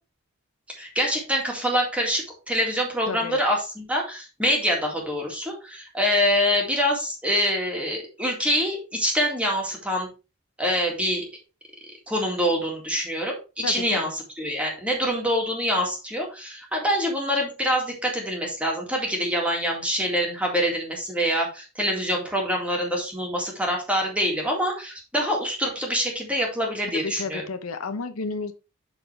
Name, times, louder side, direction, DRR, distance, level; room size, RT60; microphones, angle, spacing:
voice 1, 0.8-10.1 10.6-11.3 12.1-14.1 14.4-27.4, equal, 5° right, 0 dB, 2.0 m, -25 dB
voice 2, 3.1-3.4 13.6-14.1 27.0-28.5, left 4 dB, 80° left, 9 dB, 0.8 m, -32 dB
11.5 x 4.0 x 3.3 m, 0.30 s
head